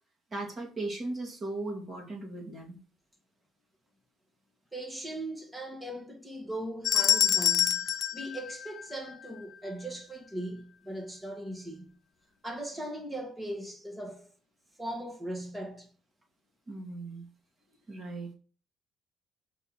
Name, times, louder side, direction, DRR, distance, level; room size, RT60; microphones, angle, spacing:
voice 1, 0.3-2.8 16.7-17.3 17.9-18.3, right 2 dB, 35° right, 2.4 m, -37 dB
voice 2, 4.7-7.9 8.1-12.0 12.4-14.3 14.8-15.9, right 1 dB, 10° right, 1.5 m, -39 dB
sound 1, 6.8-9.3, left 10 dB, 60° left, 0.5 m, -27 dB
5.5 x 4.2 x 6.0 m
cardioid pair, 120°, 0 cm